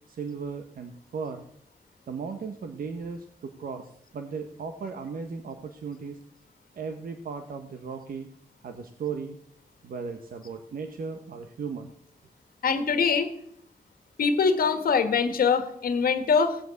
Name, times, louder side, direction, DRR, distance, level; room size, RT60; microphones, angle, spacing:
voice 1, 0.1-1.5 2.1-6.2 6.7-8.3 8.6-9.4 9.8-11.9, right 5 dB, 75° right, 6 dB, 1.2 m, -36 dB
voice 2, 12.6-13.3 14.2-16.6, left 5 dB, 90° left, 8 dB, 1.6 m, -23 dB
17.0 x 7.9 x 8.2 m, 0.74 s
wide cardioid pair, 135°, 15 cm